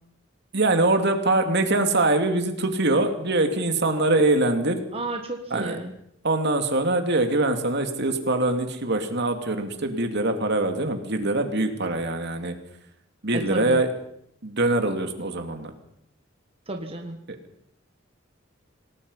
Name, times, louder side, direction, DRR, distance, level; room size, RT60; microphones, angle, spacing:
voice 1, 0.5-4.8 5.5-5.8 6.2-12.5 13.2-13.9 14.4-15.7 17.3-17.4, right 2 dB, 60° right, 6 dB, 2.6 m, -23 dB
voice 2, 4.9-5.9 13.3-13.8 16.7-17.2, right 2 dB, 30° right, 3 dB, 1.7 m, -32 dB
27.0 x 19.0 x 5.6 m, 0.74 s
head